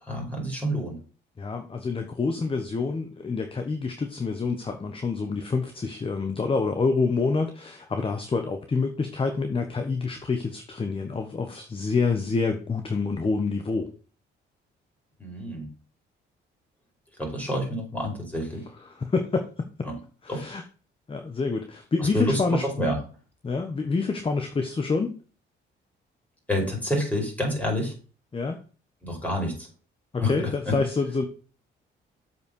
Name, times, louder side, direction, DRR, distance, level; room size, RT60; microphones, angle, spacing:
voice 1, 0.0-1.0 15.2-15.7 17.2-18.7 19.8-20.0 20.3-20.5 22.0-23.0 26.5-27.9 29.0-29.7 30.2-30.8, left 1 dB, 5° left, 0 dB, 5.0 m, -28 dB
voice 2, 1.4-13.9 18.8-19.9 20.2-20.6 21.1-22.6 23.4-25.1 28.3-28.6 30.1-31.3, left 4 dB, 25° left, 6 dB, 1.2 m, -27 dB
7.7 x 5.5 x 5.4 m, 0.38 s
cardioid pair, 90°, 20 cm